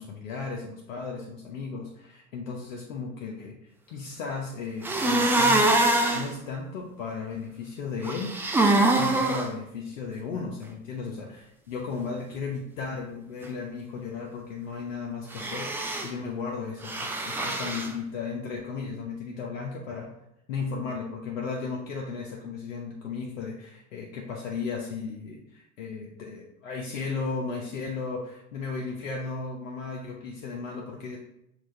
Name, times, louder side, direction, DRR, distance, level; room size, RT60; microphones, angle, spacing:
voice 1, 0.0-5.8 6.1-8.4 8.9-20.1 20.5-31.2, left 4 dB, 75° left, 0 dB, 0.7 m, -35 dB
sound 1, 4.8-6.3 8.0-9.4 15.3-16.1 16.8-17.9, right 2 dB, 5° right, 0.3 m, -24 dB
5.9 x 2.4 x 3.2 m, 0.81 s
hypercardioid pair, 80°, 40 cm